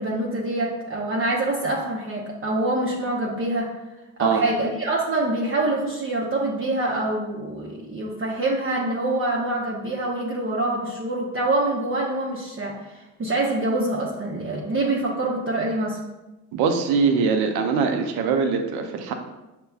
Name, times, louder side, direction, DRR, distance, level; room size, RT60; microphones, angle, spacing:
voice 1, 0.0-3.7 4.2-16.0, right 2 dB, 30° right, -3 dB, 0.8 m, -25 dB
voice 2, 16.5-19.1, right 5 dB, 70° right, 5 dB, 0.6 m, -22 dB
6.5 x 2.2 x 2.3 m, 1.0 s
hypercardioid pair, 45°, 39 cm